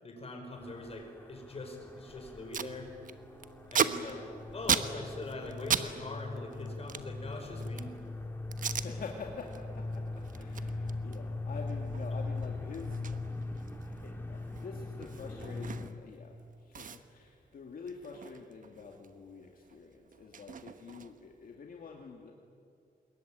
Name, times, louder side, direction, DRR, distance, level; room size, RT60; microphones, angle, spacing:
voice 1, 0.0-2.9 3.7-7.9, left 2 dB, 40° left, 3 dB, 5.3 m, -42 dB
sound 1, 0.5-15.9, left 2 dB, 15° left, 2.2 m, -40 dB
sound 2, 2.0-7.1, right 3 dB, 40° right, 6.7 m, -59 dB
Packing tape duct tape, 2.0-2.1 2.3-2.7 3.0-5.9 6.1-8.0 8.5-8.9 9.3-9.6 9.9-16.1 16.4-16.5 16.7-19.1 19.4-21.4, right 7 dB, 55° right, 1.1 m, -37 dB
voice 2, 8.7-13.0 13.8-22.3, left 4 dB, 65° left, 1 dB, 2.3 m, -47 dB
25.0 x 22.0 x 9.1 m, 2.4 s
wide cardioid pair, 140°, 16 cm